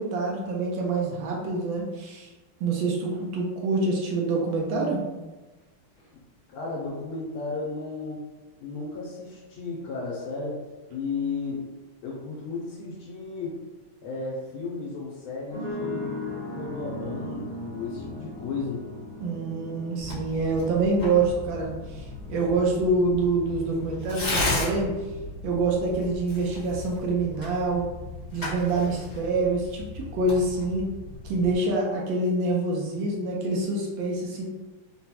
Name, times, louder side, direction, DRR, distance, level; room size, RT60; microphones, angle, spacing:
voice 1, 0.0-2.3 2.6-5.0 19.2-22.0 22.3-24.9 25.4-27.9 28.3-30.9 31.2-34.4, right 3 dB, 75° right, -1 dB, 1.2 m, -26 dB
voice 2, 6.5-8.2 8.6-10.6 10.9-11.7 12.0-13.6 14.0-16.1 16.5-18.9, left 3 dB, 80° left, -5 dB, 1.6 m, -34 dB
sound 1, 15.5-25.5, left 2 dB, 25° right, 0.7 m, -39 dB
Tearing, 20.0-31.5, left 2 dB, 15° left, 0.9 m, -35 dB
3.9 x 2.2 x 2.8 m, 1.1 s
omnidirectional pair, 2.3 m